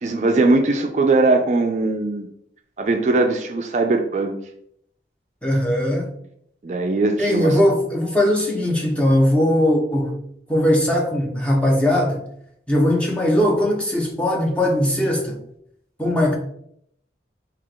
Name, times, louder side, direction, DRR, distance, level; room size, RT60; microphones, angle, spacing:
voice 1, 0.0-2.3 2.8-4.4 6.6-7.6, right 2 dB, 40° right, 4 dB, 0.3 m, -20 dB
voice 2, 5.4-6.1 7.2-10.2 10.5-12.2 12.7-15.4 16.0-16.4, left 1 dB, 5° left, -1 dB, 0.7 m, -19 dB
3.5 x 2.8 x 3.7 m, 0.71 s
head